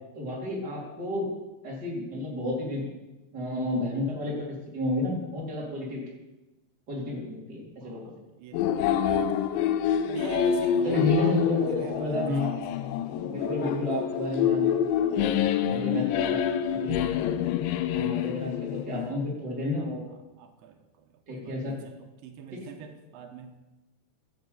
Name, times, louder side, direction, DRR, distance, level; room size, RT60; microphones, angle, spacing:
voice 1, 0.1-1.3 1.6-2.9 3.3-6.0 6.9-8.1 10.8-12.6 13.3-15.3 15.7-16.4 16.7-17.1 17.9-20.0 21.3-21.7 22.5-22.7, left 2 dB, 25° right, -4 dB, 4.1 m, -31 dB
voice 2, 7.8-9.3 10.0-12.6 19.8-23.6, right 8 dB, 90° right, 5 dB, 3.5 m, -44 dB
sound 1, 8.5-19.1, left 9 dB, 85° left, 3.0 m, -27 dB
12.5 x 9.1 x 8.3 m, 1.0 s
omnidirectional pair, 5.0 m